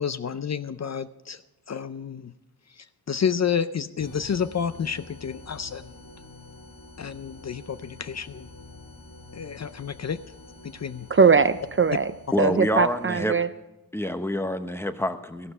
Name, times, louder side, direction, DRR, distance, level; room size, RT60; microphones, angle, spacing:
voice 1, 0.0-1.4 1.7-2.3 2.7-6.1 7.0-8.5 9.3-10.2 10.6-11.1, left 7 dB, 45° left, 14 dB, 0.5 m, -30 dB
sound 1, 4.0-13.4, left 2 dB, 60° left, 2.6 m, -47 dB
voice 2, 11.1-12.1 12.4-13.5, right 5 dB, 35° right, 13 dB, 0.4 m, -20 dB
voice 3, 12.3-13.3 13.9-15.5, left 1 dB, 5° left, 10 dB, 0.8 m, -27 dB
14.5 x 12.0 x 4.9 m, 0.97 s
wide cardioid pair, 130°, 38 cm